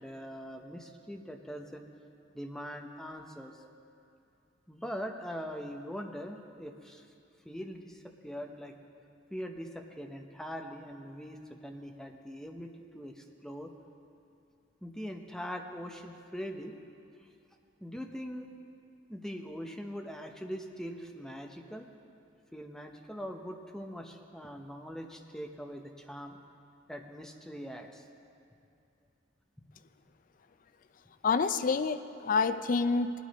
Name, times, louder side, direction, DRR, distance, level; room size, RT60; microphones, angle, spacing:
voice 1, 0.0-1.9 2.3-3.6 4.7-7.0 7.4-8.7 9.3-13.7 14.8-16.7 17.2-17.3 17.8-18.5 19.1-21.9 22.5-26.4 26.9-28.0, equal, 5° left, 3 dB, 0.7 m, -42 dB
voice 2, 31.2-33.2, left 4 dB, 45° left, 12 dB, 0.4 m, -28 dB
19.5 x 9.2 x 4.2 m, 2.5 s
head